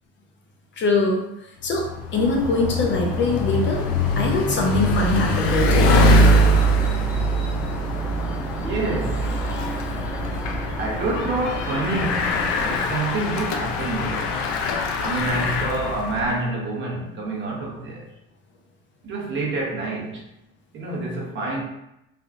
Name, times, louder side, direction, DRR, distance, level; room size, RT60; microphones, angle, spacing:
voice 1, 0.8-1.2 1.6-3.8 4.2-5.9, left 2 dB, 40° left, 1 dB, 0.6 m, -22 dB
Bicycle, 1.7-16.4, equal, 85° left, 0.5 m, -22 dB
sound 1, 2.1-12.8, right 1 dB, 5° right, 0.4 m, -35 dB
voice 2, 8.6-9.5 10.8-14.5 15.0-18.1 19.0-20.2 20.7-21.6, right 2 dB, 40° right, -2 dB, 0.9 m, -28 dB
3.5 x 2.4 x 2.3 m, 0.84 s
cardioid pair, 120°, 30 cm